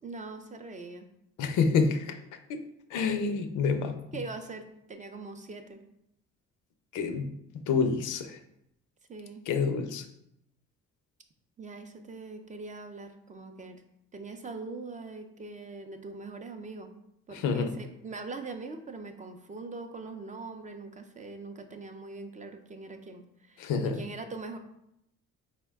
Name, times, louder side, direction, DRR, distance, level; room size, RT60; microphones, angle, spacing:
voice 1, 0.0-1.1 4.1-5.8 9.1-9.4 11.6-13.8 14.1-16.9 17.3-24.6, right 3 dB, 25° right, 6 dB, 0.4 m, -42 dB
voice 2, 1.4-2.1 2.5-2.6 2.9-4.0 6.9-7.3 7.7-8.4 9.5-10.0 17.3-17.8 23.6-24.0, left 5 dB, 80° left, 7 dB, 0.5 m, -27 dB
4.3 x 2.1 x 3.4 m, 0.79 s
cardioid pair, 90°, 30 cm